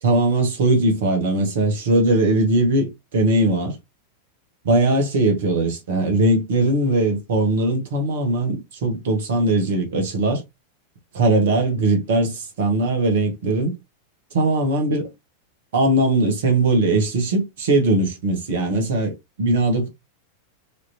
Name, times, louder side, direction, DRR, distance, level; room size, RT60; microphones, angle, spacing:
voice 1, 0.0-3.8 4.6-10.4 11.1-13.7 14.3-15.1 15.7-19.9, right 2 dB, 55° right, 1.5 m, -20 dB
4.9 x 3.0 x 2.8 m
figure-of-eight pair, 90°, 0 cm